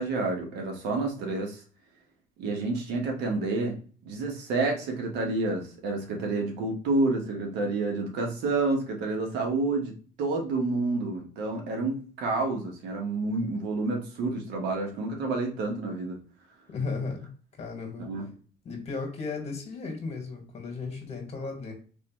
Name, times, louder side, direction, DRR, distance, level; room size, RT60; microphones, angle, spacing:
voice 1, 0.0-1.6 2.4-3.8 4.0-9.9 10.2-16.2 18.0-18.3, right 3 dB, 90° right, 2 dB, 1.3 m, -29 dB
voice 2, 16.7-17.3 17.6-18.1 18.6-21.7, left 4 dB, 40° left, 3 dB, 1.7 m, -35 dB
4.1 x 3.2 x 3.0 m, 0.40 s
cardioid pair, 110°, 17 cm